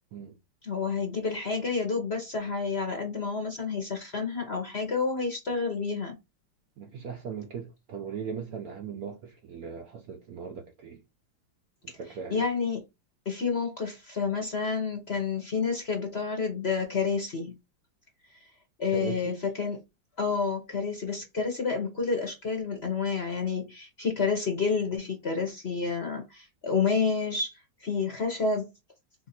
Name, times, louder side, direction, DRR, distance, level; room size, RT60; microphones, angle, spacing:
voice 1, 0.6-6.2 12.3-12.8 13.3-17.6 18.8-19.8 20.2-27.5 27.8-28.7, left 5 dB, 45° left, 0.8 m, -29 dB
voice 2, 6.8-11.0 11.8-12.5 18.9-19.4, right 6 dB, 70° right, 0.9 m, -38 dB
4.0 x 2.6 x 4.1 m
omnidirectional pair, 2.1 m